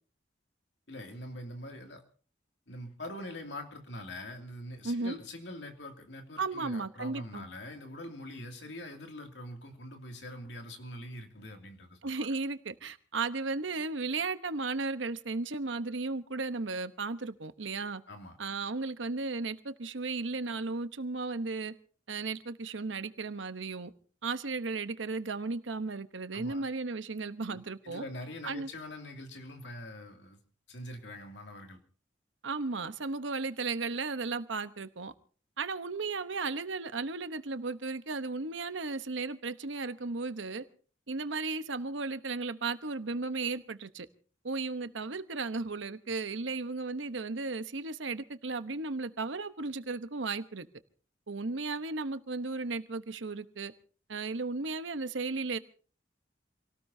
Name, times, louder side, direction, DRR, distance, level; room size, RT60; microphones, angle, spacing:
voice 1, 0.9-2.0 2.7-12.3 18.1-18.4 26.3-26.6 27.5-30.4 30.7-31.8, left 1 dB, 70° left, 2.6 m, -44 dB
voice 2, 4.8-5.2 6.4-7.5 12.0-18.0 18.4-21.7 22.1-23.9 24.2-28.0 28.4-28.7 32.4-35.1 35.6-40.6 41.1-44.1 44.4-50.7 51.3-53.7 54.1-55.6, right 3 dB, 85° right, 1.0 m, -35 dB
28.0 x 18.0 x 2.8 m
head